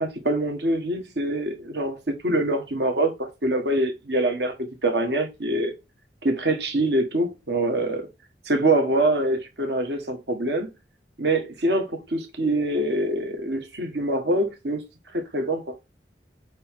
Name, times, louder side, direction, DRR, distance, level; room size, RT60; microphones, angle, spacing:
voice 1, 0.0-4.5 4.8-5.7 6.2-8.1 8.5-10.7 11.2-14.8 15.1-15.8, right 1 dB, 75° right, 1.5 m, -24 dB
8.0 x 3.1 x 3.7 m
head